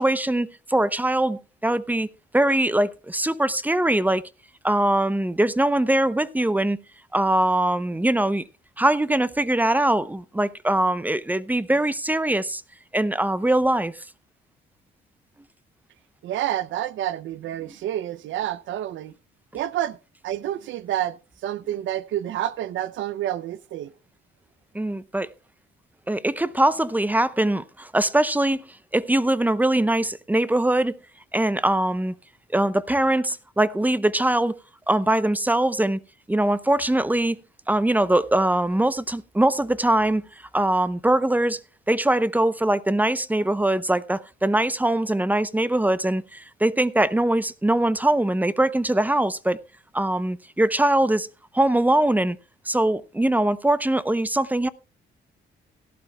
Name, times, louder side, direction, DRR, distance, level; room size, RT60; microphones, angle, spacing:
voice 1, 0.0-2.1 2.3-4.2 4.6-6.8 7.1-8.4 8.8-12.6 12.9-13.9 24.7-25.3 26.1-28.6 28.9-31.0 31.3-32.1 32.5-34.6 34.9-36.0 36.3-37.4 37.7-40.2 40.5-41.6 41.9-49.6 49.9-51.3 51.5-52.4 52.7-54.7, right 1 dB, 10° right, 0.6 m, -22 dB
voice 2, 16.2-19.1 19.5-20.0 20.2-21.2 21.4-23.9, right 12 dB, 75° right, 0.5 m, -28 dB
17.0 x 11.5 x 2.3 m
cardioid pair, 90°, 20 cm